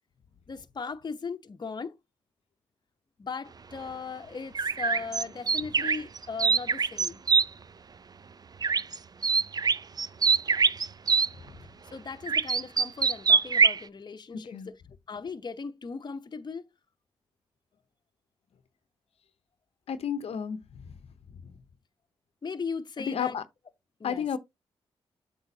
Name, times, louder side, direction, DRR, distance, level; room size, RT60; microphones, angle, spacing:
voice 1, 0.5-1.9 3.2-7.2 11.9-14.8 15.1-16.7 22.4-23.4 24.0-24.2, left 5 dB, 40° left, 0.8 m, -38 dB
sound 1, 4.6-7.5 8.6-9.0 9.2-11.3 12.3-13.8, right 5 dB, 40° right, 0.4 m, -23 dB
voice 2, 14.3-14.7 19.9-21.0 21.4-21.5 23.1-23.4 24.0-24.4, left 7 dB, 70° left, 0.8 m, -32 dB
8.0 x 5.5 x 2.8 m
supercardioid pair, 45°, 11 cm